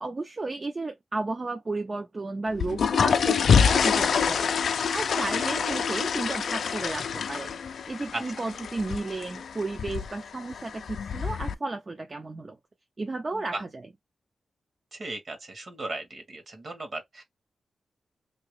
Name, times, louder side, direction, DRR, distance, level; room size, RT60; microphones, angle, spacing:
voice 1, 0.0-4.5 4.9-7.5 7.9-12.6 13.0-13.8, right 3 dB, 30° right, 0.4 m, -33 dB
sound 1, 2.5-11.5, left 6 dB, 80° left, 0.3 m, -26 dB
voice 2, 13.3-13.6 14.9-17.2, right 2 dB, 50° right, 1.4 m, -36 dB
2.8 x 2.8 x 3.1 m
wide cardioid pair, 120°, 0 cm